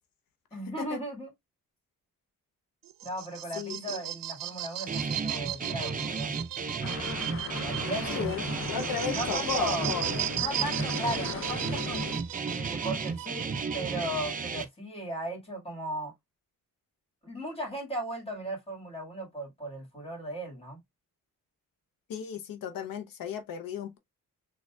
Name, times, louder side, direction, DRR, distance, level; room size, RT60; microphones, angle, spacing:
voice 1, 0.5-1.3 3.0-6.4 7.4-8.4 9.1-9.9 10.3-12.1 12.5-16.1 17.2-20.8, right 1 dB, 15° left, 1.7 m, -37 dB
sound 1, 2.8-14.1, right 13 dB, 80° right, 0.5 m, -37 dB
voice 2, 3.5-4.0 8.0-10.3 22.1-24.0, left 7 dB, 85° left, 0.7 m, -35 dB
Guitar, 4.9-14.6, right 4 dB, 25° right, 0.4 m, -33 dB
sound 2, 6.8-12.2, left 6 dB, 40° left, 0.5 m, -39 dB
6.4 x 2.3 x 2.2 m
wide cardioid pair, 155°, 33 cm